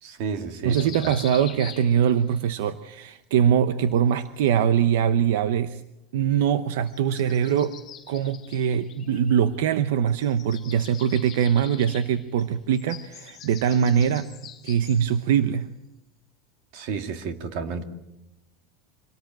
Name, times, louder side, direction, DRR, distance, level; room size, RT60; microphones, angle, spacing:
voice 1, 0.0-1.2 16.7-17.8, right 5 dB, 50° right, 7 dB, 2.3 m, -32 dB
voice 2, 0.6-5.8 6.1-7.8 8.1-14.3 14.6-15.7, right 8 dB, 70° right, 12 dB, 0.9 m, -22 dB
sound 1, 0.7-2.4 3.8-4.9 6.8-9.8 10.1-15.3, left 10 dB, 20° left, 4.7 m, -45 dB
25.5 x 18.5 x 9.1 m, 0.90 s
supercardioid pair, 175°, 0 cm